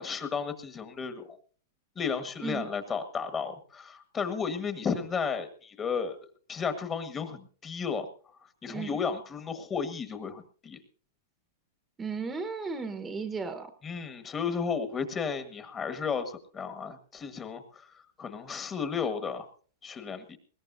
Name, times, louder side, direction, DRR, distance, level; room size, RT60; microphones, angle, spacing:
voice 1, 0.0-1.4 1.9-6.2 6.5-8.1 8.6-10.8 13.8-17.9 18.2-19.5 19.8-20.4, left 6 dB, 20° left, 8 dB, 1.5 m, -33 dB
voice 2, 8.7-9.0 12.0-13.7, right 4 dB, 15° right, 9 dB, 1.2 m, -35 dB
20.5 x 17.0 x 2.7 m, 0.41 s
hypercardioid pair, 140°, 0 cm